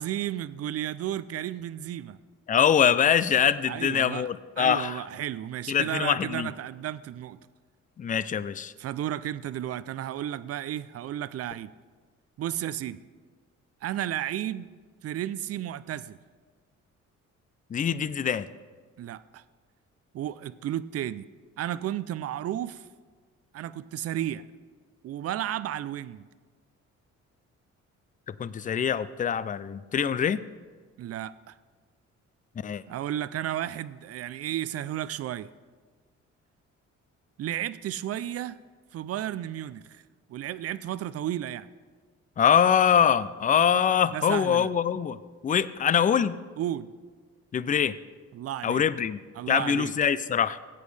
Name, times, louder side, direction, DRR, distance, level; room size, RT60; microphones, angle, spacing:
voice 1, 0.0-2.2 3.7-4.3 4.6-7.4 8.8-11.7 12.4-13.0 13.8-14.7 15.0-16.2 19.0-19.4 20.1-21.3 21.6-22.9 23.5-24.4 25.0-26.3 31.0-31.5 32.9-35.5 37.4-38.6 38.9-40.0 40.3-41.7 44.1-44.7 46.6-46.9 48.3-48.8 49.4-49.9, right 12 dB, 55° right, 16 dB, 0.5 m, -33 dB
voice 2, 2.5-5.0 5.7-6.5 8.0-8.7 17.7-18.5 28.4-30.4 32.6-32.8 42.4-45.2 45.4-46.4 47.5-47.9 48.6-49.2 49.5-50.6, left 8 dB, 25° left, 16 dB, 0.4 m, -24 dB
16.0 x 8.5 x 3.3 m, 1.5 s
cardioid pair, 90°, 30 cm